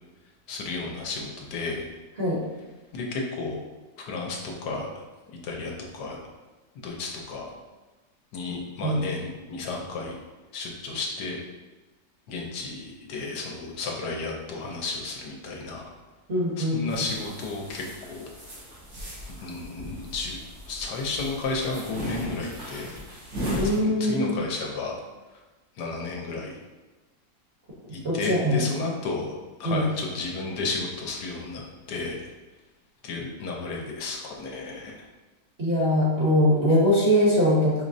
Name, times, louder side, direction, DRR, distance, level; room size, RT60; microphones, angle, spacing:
voice 1, 0.5-1.9 2.9-3.6 4.1-4.9 5.4-6.2 6.8-7.5 8.3-10.2 10.5-11.4 12.3-15.8 16.6-18.3 19.4-20.4 20.7-23.0 23.6-25.0 25.8-26.6 27.9-31.6 31.9-32.3 33.0-35.1, left 3 dB, 75° left, 0 dB, 1.2 m, -32 dB
voice 2, 16.3-16.8 23.6-24.4 28.0-28.7 29.6-29.9 35.6-37.8, equal, 45° right, -7 dB, 0.9 m, -22 dB
sound 1, 16.9-23.8, equal, 80° right, 2.1 m, -36 dB
5.1 x 3.0 x 2.6 m, 1.2 s
omnidirectional pair, 1.9 m